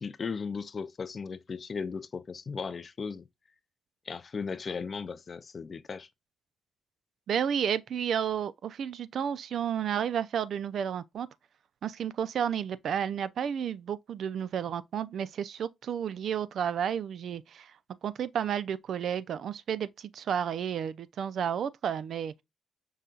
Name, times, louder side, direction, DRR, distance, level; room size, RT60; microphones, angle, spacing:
voice 1, 0.0-3.2 4.1-6.1, left 5 dB, 35° left, 0.4 m, -36 dB
voice 2, 7.3-11.3 11.8-17.7 18.0-22.4, right 8 dB, 60° right, 0.3 m, -32 dB
5.5 x 2.3 x 3.7 m
cardioid pair, 130°, 0 cm